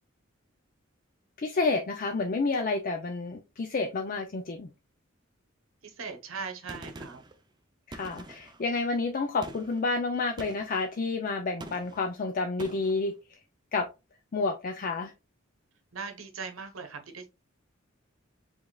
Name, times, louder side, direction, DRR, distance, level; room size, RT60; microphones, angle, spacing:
voice 1, 1.4-4.7 7.9-13.4 13.7-13.9 14.3-15.1, left 3 dB, 45° left, 0.4 m, -30 dB
voice 2, 5.8-7.2 15.9-17.3, right 5 dB, 80° right, 0.9 m, -39 dB
Gunshot gunfire, 6.7-7.4 7.9-8.6 9.4-9.8 10.4-10.8 11.6-12.1 12.6-13.0, right 2 dB, 20° right, 0.5 m, -44 dB
5.1 x 3.5 x 2.3 m
head